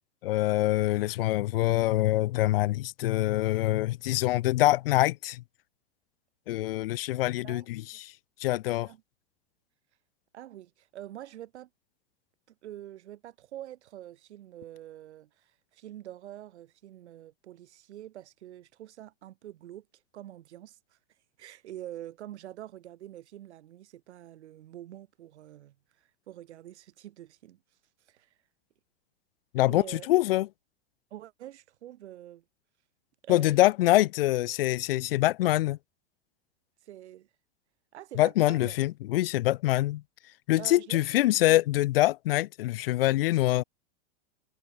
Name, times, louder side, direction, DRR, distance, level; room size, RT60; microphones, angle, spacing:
voice 1, 0.2-5.4 6.5-8.1 8.4-8.9 29.5-30.5 33.3-35.8 38.2-40.0 40.5-43.6, left 16 dB, 55° left, 1.1 m, -25 dB
voice 2, 10.3-11.7 12.5-21.0 21.4-27.6 28.1-28.3 29.7-30.1 31.1-32.4 33.2-33.6 36.8-37.3 37.9-38.8 40.6-41.0 41.3-41.6, right 13 dB, 80° right, 7.0 m, -46 dB
supercardioid pair, 175°, 33 cm